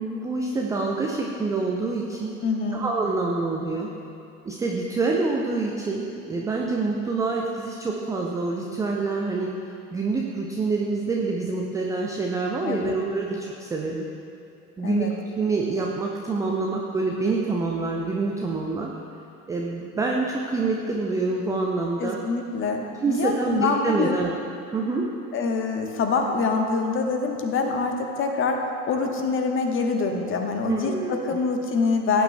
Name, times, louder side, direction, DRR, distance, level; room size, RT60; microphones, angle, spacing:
voice 1, 0.0-2.3 2.7-3.9 4.4-9.6 9.9-14.1 14.8-18.9 19.5-22.2 23.0-24.3 24.7-25.1 30.7-31.4, right 3 dB, 10° right, -1 dB, 0.4 m, -26 dB
voice 2, 2.4-2.8 12.6-12.9 14.8-15.1 22.0-24.2 25.3-28.6 28.9-32.2, left 4 dB, 25° left, 3 dB, 1.1 m, -25 dB
16.5 x 9.1 x 2.2 m, 2.7 s
figure-of-eight pair, 85°, 46 cm